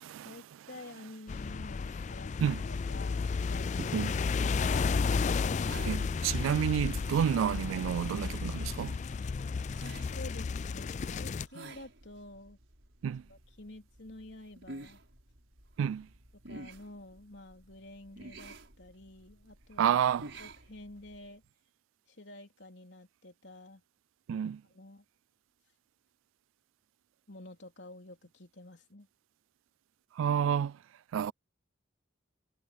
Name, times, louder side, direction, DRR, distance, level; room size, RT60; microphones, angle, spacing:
voice 1, 0.2-4.0 9.8-12.6 13.3-15.0 16.5-20.0 20.4-21.4 22.1-23.8 24.7-25.0 27.3-29.1, left 2 dB, 65° left, 3.8 m, -50 dB
sound 1, 1.3-11.5, left 5 dB, 35° left, 0.3 m, -33 dB
sound 2, 4.8-21.3, right 2 dB, 70° right, 6.0 m, -52 dB
voice 2, 5.8-9.0 13.0-13.2 15.8-16.1 19.8-20.2 24.3-24.6 30.2-30.8 31.1-31.3, right 8 dB, 90° right, 0.3 m, -29 dB
head